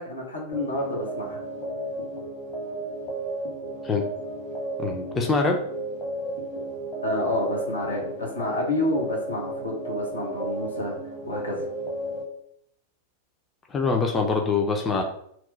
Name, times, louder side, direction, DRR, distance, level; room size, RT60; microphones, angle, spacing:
voice 1, 0.0-1.4 7.0-11.0 11.3-11.7, left 1 dB, 75° left, -2 dB, 0.9 m, -29 dB
sound 1, 0.5-12.2, right 1 dB, 40° left, 1.1 m, -33 dB
voice 2, 4.8-5.6 13.7-15.0, left 4 dB, 20° left, 2 dB, 0.5 m, -24 dB
2.9 x 2.1 x 3.9 m, 0.69 s
figure-of-eight pair, 90°, 0 cm